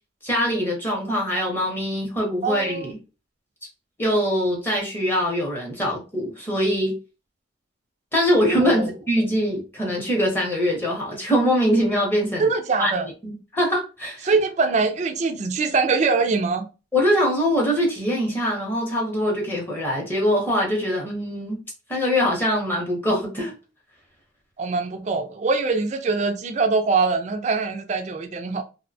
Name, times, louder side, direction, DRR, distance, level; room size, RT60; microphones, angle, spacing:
voice 1, 0.2-3.0 4.0-7.0 8.1-12.5 12.8-14.3 16.9-21.6 21.9-23.5, equal, 10° left, 0.6 m, -23 dB
voice 2, 2.4-2.9 8.6-8.9 12.4-13.1 14.2-16.7 24.6-28.6, right 4 dB, 35° right, 0.3 m, -23 dB
2.6 x 2.1 x 2.6 m
head